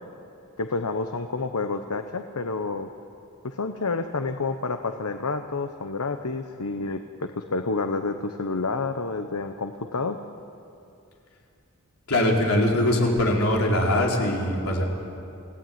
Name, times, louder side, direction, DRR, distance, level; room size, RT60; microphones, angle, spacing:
voice 1, 0.6-2.9 3.4-10.2, left 3 dB, 85° left, 7 dB, 1.1 m, -29 dB
voice 2, 12.1-14.8, left 1 dB, 70° left, -1 dB, 4.4 m, -22 dB
27.0 x 17.5 x 9.5 m, 2.6 s
head